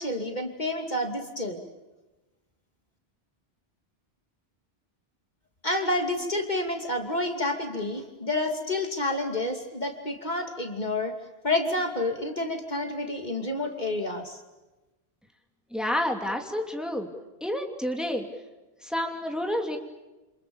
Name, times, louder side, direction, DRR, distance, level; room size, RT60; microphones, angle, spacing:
voice 1, 0.0-1.6 5.6-11.1 11.4-14.4, left 2 dB, 45° left, 4 dB, 2.8 m, -29 dB
voice 2, 15.7-17.1 17.4-18.2 18.8-19.8, left 1 dB, ahead, 3 dB, 2.8 m, -29 dB
28.5 x 27.5 x 7.1 m, 1.1 s
omnidirectional pair, 1.1 m